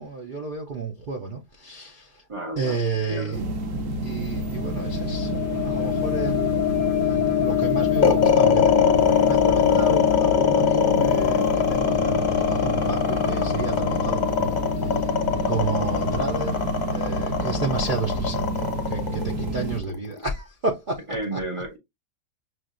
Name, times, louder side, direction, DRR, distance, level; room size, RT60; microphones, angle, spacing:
voice 1, 0.0-2.2 2.6-3.4 4.0-8.9 9.2-15.1 15.5-16.6 16.9-21.0 21.3-21.4, right 3 dB, 75° right, 0.4 m, -31 dB
voice 2, 2.3-3.4 21.1-21.8, right 1 dB, 30° right, 0.6 m, -32 dB
sound 1, 3.3-19.8, right 1 dB, 60° right, 1.1 m, -29 dB
sound 2, 4.4-16.3, left 14 dB, 70° left, 0.9 m, -26 dB
sound 3, 8.0-20.3, left 6 dB, 35° left, 0.8 m, -22 dB
5.8 x 2.5 x 2.4 m
omnidirectional pair, 1.7 m